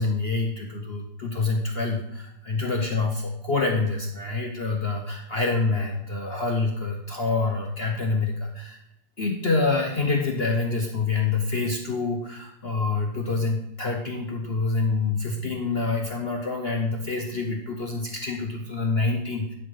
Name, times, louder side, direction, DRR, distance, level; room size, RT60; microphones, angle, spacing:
voice 1, 0.0-8.8 9.2-19.5, left 3 dB, 45° left, 2 dB, 0.9 m, -26 dB
10.5 x 5.2 x 5.6 m, 0.81 s
omnidirectional pair, 1.9 m